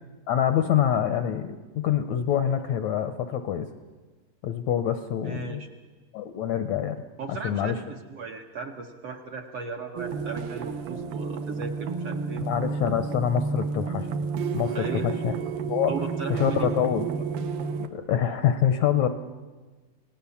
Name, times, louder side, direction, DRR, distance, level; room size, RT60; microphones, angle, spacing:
voice 1, 0.3-3.7 4.4-5.6 6.1-7.0 7.3-7.8 12.4-14.1 14.5-15.3 15.7-15.9 16.3-17.1 17.8-19.1, left 9 dB, 75° left, 9 dB, 1.7 m, -26 dB
voice 2, 5.2-5.7 7.2-12.4 14.7-15.1 15.9-16.7, right 4 dB, 65° right, 2 dB, 1.6 m, -36 dB
sound 1, 10.0-17.9, right 5 dB, 85° right, 3.0 m, -31 dB
28.5 x 18.5 x 7.1 m, 1.3 s
omnidirectional pair, 4.0 m